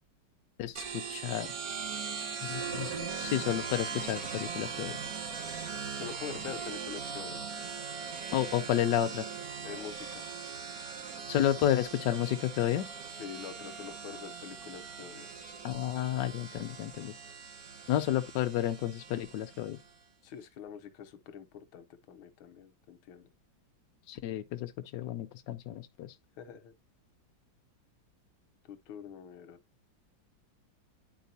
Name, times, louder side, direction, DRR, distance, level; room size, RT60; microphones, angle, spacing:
voice 1, 0.6-1.5 2.5-2.9 3.2-5.0 8.3-9.2 11.3-13.0 15.6-17.1 17.9-19.8 24.1-26.1, left 11 dB, 70° left, 1.2 m, -31 dB
sound 1, 0.8-19.9, right 6 dB, 50° right, 1.5 m, -40 dB
voice 2, 6.0-7.5 9.6-10.3 13.1-15.3 20.2-23.3 26.4-26.7 28.7-29.6, left 8 dB, 90° left, 1.7 m, -45 dB
10.0 x 4.7 x 2.7 m
omnidirectional pair, 2.2 m